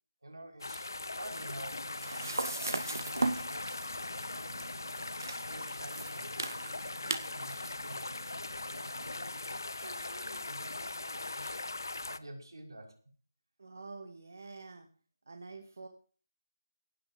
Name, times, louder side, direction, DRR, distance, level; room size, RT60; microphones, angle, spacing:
voice 1, 0.2-4.6 5.1-6.5 7.3-8.3 8.6-11.6 12.1-13.0, right 1 dB, 75° right, 4 dB, 5.8 m, -50 dB
sound 1, 0.6-12.2, left 2 dB, 60° left, 1.1 m, -40 dB
sound 2, 1.3-9.6, right 2 dB, 60° right, 2.2 m, -39 dB
voice 2, 13.6-14.9 15.3-15.9, right 3 dB, 40° right, 5 dB, 1.9 m, -47 dB
17.5 x 6.8 x 7.8 m, 0.40 s
figure-of-eight pair, 180°, 2 cm